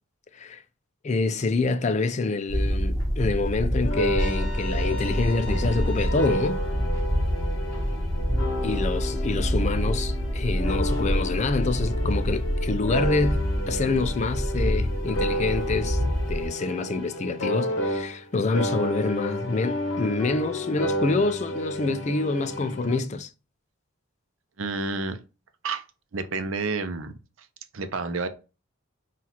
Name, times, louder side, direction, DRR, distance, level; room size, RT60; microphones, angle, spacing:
voice 1, 1.0-6.6 8.6-16.0 16.3-23.3, left 3 dB, 30° left, 0.3 m, -27 dB
sound 1, 2.5-16.5, equal, 15° left, 1.1 m, -27 dB
sound 2, 3.8-18.3 18.5-23.0, equal, 60° left, 0.8 m, -32 dB
Trumpet, 4.2-6.5, left 4 dB, 40° right, 1.3 m, -39 dB
voice 2, 24.6-25.2 25.6-25.8 26.1-27.1 27.7-28.3, right 3 dB, 70° right, 0.6 m, -29 dB
5.8 x 2.4 x 2.9 m
head